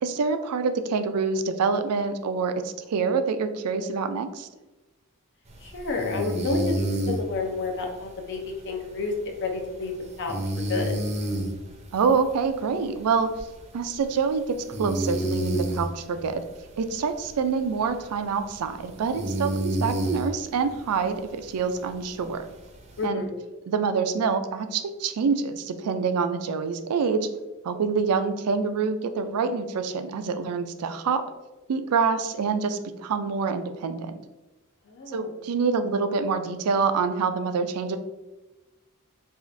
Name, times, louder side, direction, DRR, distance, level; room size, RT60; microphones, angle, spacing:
voice 1, 0.0-4.5 11.9-13.3 13.7-16.4 16.8-22.5 23.0-23.2 23.7-27.3 27.6-31.2 31.7-34.1 35.1-38.0, right 5 dB, 80° right, 9 dB, 0.4 m, -26 dB
sound 1, 5.5-23.0, right 1 dB, 30° right, 0.6 m, -32 dB
voice 2, 5.6-9.1 9.4-9.9 10.2-10.4 10.7-10.9 23.0-23.3 34.9-35.3, left 4 dB, 55° left, 2 dB, 0.7 m, -30 dB
4.9 x 2.5 x 2.6 m, 1.1 s
head